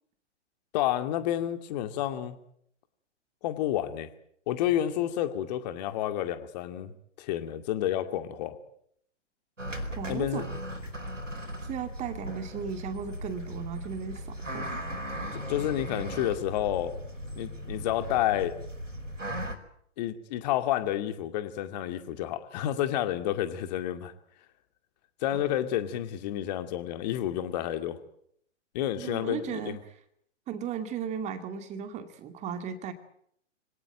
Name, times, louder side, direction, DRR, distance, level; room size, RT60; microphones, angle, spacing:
voice 1, 0.7-2.4 3.4-4.1 4.5-6.9 7.2-8.5 10.1-10.4 15.3-16.9 17.4-18.5 20.0-24.1 25.2-28.0 28.7-29.8, left 12 dB, 35° left, 9 dB, 2.3 m, -30 dB
sound 1, 9.6-19.5, equal, 90° right, 4.8 m, -37 dB
voice 2, 10.0-10.5 11.7-15.0 29.0-29.8 30.5-32.9, right 7 dB, 20° right, 9 dB, 2.5 m, -36 dB
25.0 x 17.5 x 9.2 m, 0.70 s
figure-of-eight pair, 120°, 37 cm